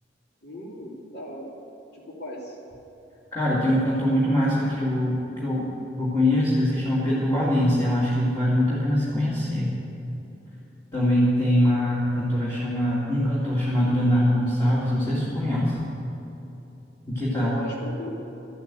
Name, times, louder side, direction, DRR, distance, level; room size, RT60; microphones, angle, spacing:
voice 1, 0.4-1.5 1.9-2.6 17.3-18.1, equal, 65° left, -3 dB, 2.8 m, -37 dB
voice 2, 3.3-5.7 6.0-9.7 10.9-15.8 17.1-17.5, left 1 dB, 15° left, -9 dB, 2.5 m, -23 dB
13.5 x 8.9 x 8.9 m, 2.9 s
head